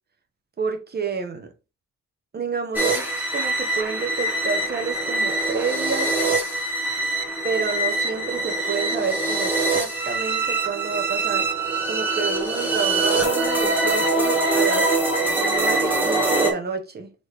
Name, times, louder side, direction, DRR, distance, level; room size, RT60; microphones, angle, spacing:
voice 1, 0.6-1.5 2.3-3.1 3.3-6.1 7.4-11.5 11.9-14.9 15.4-17.1, right 5 dB, 35° right, 0.9 m, -29 dB
sound 1, 2.7-16.5, right 2 dB, 5° right, 1.1 m, -23 dB
4.7 x 3.2 x 3.0 m
cardioid pair, 90°, 30 cm